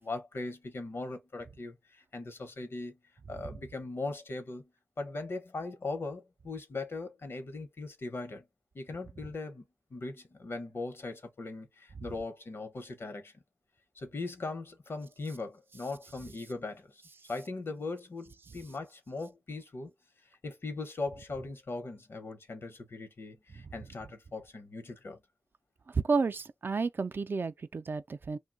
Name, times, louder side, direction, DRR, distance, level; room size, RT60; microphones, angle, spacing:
voice 1, 0.0-3.0 3.3-4.7 5.0-8.4 8.7-9.6 9.9-13.4 14.0-17.0 17.3-19.9 20.4-25.2, left 3 dB, 80° left, 0.9 m, -39 dB
voice 2, 25.9-28.4, right 4 dB, 65° right, 0.3 m, -31 dB
2.7 x 2.2 x 3.8 m
wide cardioid pair, 70°, 4 cm